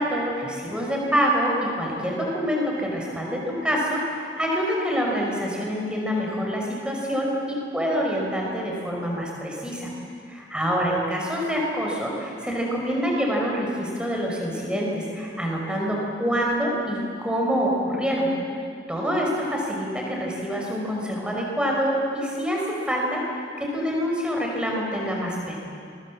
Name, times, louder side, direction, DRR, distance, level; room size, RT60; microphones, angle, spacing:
voice 1, 0.0-9.9 10.5-18.3 18.9-25.6, equal, 5° right, -2 dB, 5.4 m, -26 dB
28.5 x 24.0 x 7.6 m, 2.5 s
head